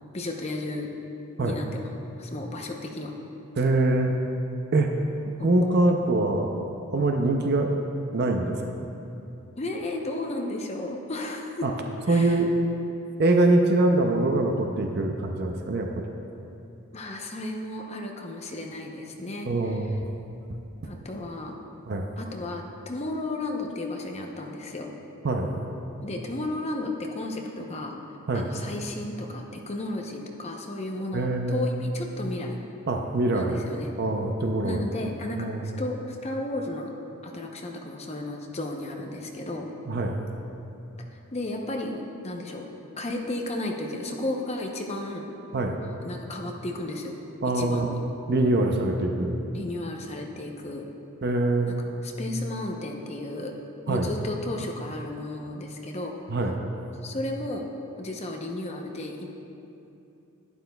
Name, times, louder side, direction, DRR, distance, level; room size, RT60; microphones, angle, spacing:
voice 1, 0.1-0.9 1.4-1.9 2.2-3.1 5.4-5.5 9.6-11.7 12.1-12.4 16.9-19.5 20.8-21.6 22.2-24.9 26.0-28.0 28.3-32.6 33.3-33.9 34.6-36.9 37.2-39.7 41.3-42.7 43.0-45.3 46.0-47.2 47.5-48.0 49.5-50.9 51.7-51.8 52.0-53.5 53.9-56.1 57.0-59.3, left 2 dB, 30° left, 1 dB, 0.7 m, -33 dB
voice 2, 3.6-4.2 4.7-4.9 5.4-6.5 6.9-7.7 8.1-8.9 11.6-11.7 12.1-12.5 13.2-16.1 19.5-20.1 21.9-22.1 25.2-25.5 28.3-28.5 31.1-31.7 32.9-33.6 34.0-34.8 35.4-35.6 39.9-40.2 45.5-45.8 47.4-47.9 48.3-49.5 51.2-51.8 53.9-54.1 56.3-56.6, right 2 dB, 50° right, 3 dB, 0.5 m, -24 dB
11.5 x 10.5 x 2.3 m, 2.8 s
head